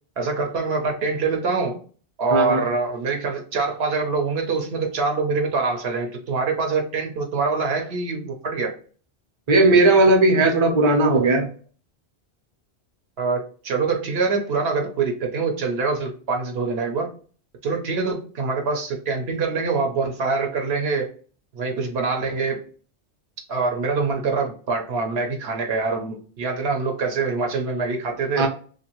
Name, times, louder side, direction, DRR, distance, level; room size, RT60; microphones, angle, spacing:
voice 1, 0.2-1.8 2.2-8.7 13.2-17.1 17.6-21.1 21.5-22.6 23.5-28.5, right 4 dB, 75° right, 2 dB, 0.9 m, -24 dB
voice 2, 2.3-2.6 9.5-11.5 28.4-28.5, right 2 dB, 35° right, 1 dB, 0.6 m, -16 dB
2.6 x 2.3 x 2.9 m, 0.41 s
omnidirectional pair, 1.1 m